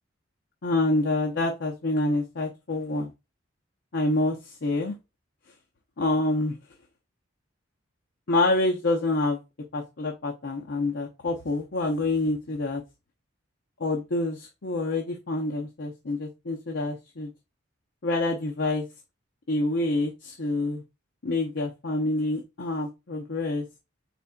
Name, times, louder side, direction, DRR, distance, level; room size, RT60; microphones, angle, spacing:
voice 1, 0.6-3.1 3.9-5.0 6.0-6.5 8.3-9.4 9.7-12.8 13.8-17.3 18.0-18.9 19.5-20.8 21.2-23.6, left 2 dB, 60° left, 0 dB, 0.7 m, -27 dB
4.3 x 4.2 x 2.4 m, 0.25 s
head